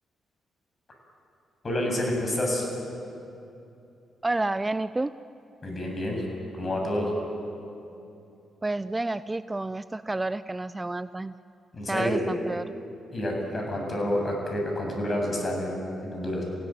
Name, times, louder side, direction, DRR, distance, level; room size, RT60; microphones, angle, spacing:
voice 1, 1.6-2.7 5.6-6.2 6.5-7.1 11.7-12.2 13.1-16.4, left 1 dB, 40° left, 1 dB, 7.8 m, -28 dB
voice 2, 4.2-5.1 8.6-11.3 11.9-12.7, right 2 dB, 20° right, 15 dB, 0.6 m, -30 dB
27.0 x 17.0 x 9.2 m, 2.7 s
hypercardioid pair, 40°, 0 cm